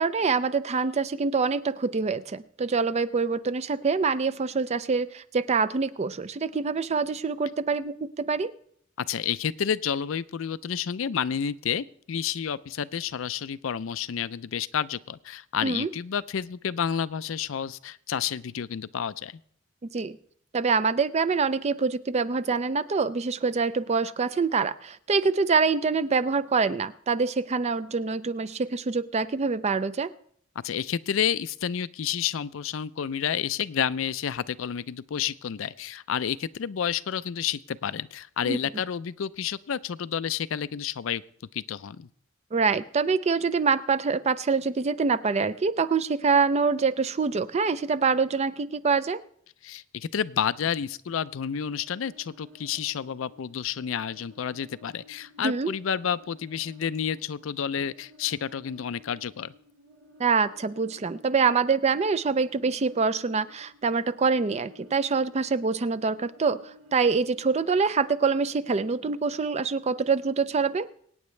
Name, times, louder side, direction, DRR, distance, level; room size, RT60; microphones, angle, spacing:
voice 1, 0.0-8.5 15.6-15.9 19.9-20.2 20.5-30.1 38.5-38.6 42.5-49.2 55.4-55.7 60.2-66.6 66.9-70.9, right 5 dB, 35° right, 15 dB, 0.4 m, -25 dB
voice 2, 9.0-19.3 30.6-41.2 41.5-42.1 49.6-59.5, left 8 dB, 70° left, 16 dB, 0.4 m, -30 dB
sound 1, 51.2-68.0, left 1 dB, 75° right, 2.1 m, -55 dB
24.0 x 9.2 x 3.2 m, 0.63 s
head